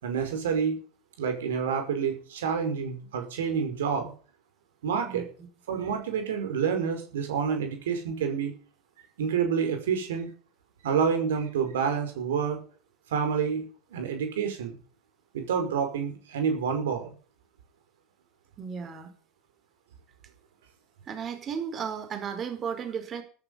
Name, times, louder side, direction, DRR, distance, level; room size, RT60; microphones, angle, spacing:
voice 1, 0.0-0.8 1.2-4.1 4.8-5.2 5.7-8.5 9.0-10.3 10.8-12.6 13.1-14.8 15.3-17.1, right 6 dB, 80° right, 6 dB, 5.5 m, -28 dB
voice 2, 18.6-19.1 21.1-23.2, right 7 dB, 35° right, 7 dB, 4.6 m, -34 dB
14.0 x 13.5 x 5.6 m, 0.41 s
hypercardioid pair, 90°, 0 cm